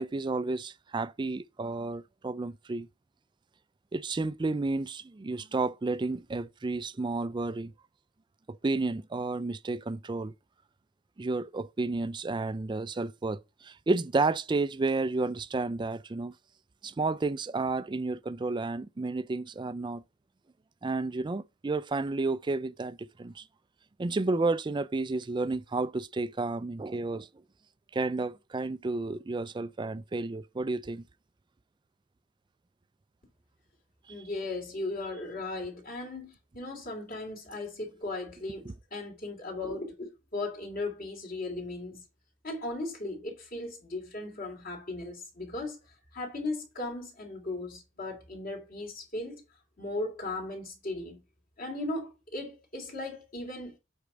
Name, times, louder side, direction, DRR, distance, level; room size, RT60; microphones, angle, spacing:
voice 1, 0.0-2.9 3.9-7.7 8.5-10.3 11.2-16.3 16.8-20.0 20.8-23.4 24.0-27.3 27.9-31.0 38.6-38.7, right 3 dB, 20° right, 0.3 m, -31 dB
voice 2, 34.1-42.0 42.4-45.8 46.1-49.4 49.8-51.2 51.6-53.8, left 2 dB, 45° left, 3.0 m, -37 dB
8.3 x 4.4 x 5.0 m
head